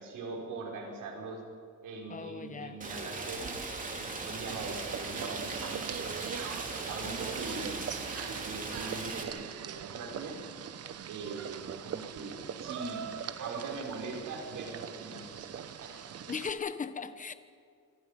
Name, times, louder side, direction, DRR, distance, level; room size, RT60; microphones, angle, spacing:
voice 1, 0.0-1.4 1.8-3.6 3.9-6.3 6.9-7.8 8.4-10.4 11.1-13.0 13.4-16.0, right 3 dB, 85° right, 6.0 m, -41 dB
voice 2, 2.1-2.9 16.3-17.3, left 5 dB, 25° left, 1.0 m, -37 dB
Rain, 2.8-9.2, right 3 dB, 25° right, 2.8 m, -39 dB
sound 1, 4.5-16.5, right 8 dB, 50° right, 1.0 m, -41 dB
27.5 x 25.0 x 5.3 m
cardioid pair, 160°, 31 cm